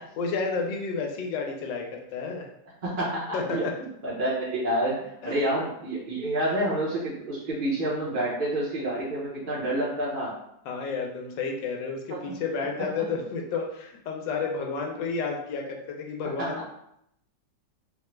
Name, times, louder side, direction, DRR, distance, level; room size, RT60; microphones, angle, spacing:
voice 1, 0.2-2.5 3.3-3.6 5.2-5.4 10.6-16.6, left 4 dB, 90° left, 1 dB, 1.3 m, -31 dB
voice 2, 2.8-10.3 12.1-12.6 16.4-16.5, right 1 dB, 45° right, -8 dB, 0.7 m, -29 dB
3.6 x 2.2 x 3.1 m, 0.76 s
omnidirectional pair, 1.9 m